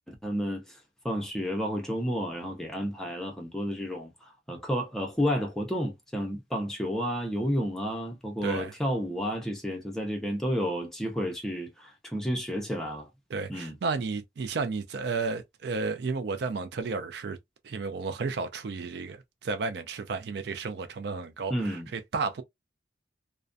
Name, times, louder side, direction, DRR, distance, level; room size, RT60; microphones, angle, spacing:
voice 1, 0.1-0.8 1.0-13.1 13.5-13.8 21.5-21.9, equal, 5° left, 0.6 m, -31 dB
voice 2, 8.4-8.7 13.3-17.4 17.6-22.4, right 4 dB, 60° right, 0.4 m, -32 dB
2.4 x 2.1 x 2.5 m
head